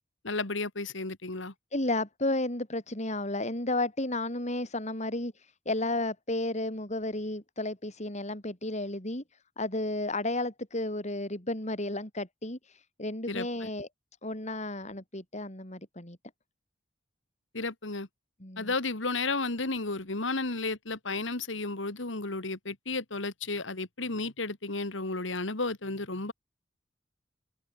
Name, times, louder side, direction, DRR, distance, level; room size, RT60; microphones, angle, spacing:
voice 1, 0.2-1.5 13.3-13.7 17.5-18.1 18.6-26.3, left 3 dB, 85° left, 2.5 m, -33 dB
voice 2, 1.7-9.2 9.6-13.9 14.2-16.2 18.4-18.7, left 2 dB, 40° left, 4.8 m, -33 dB
head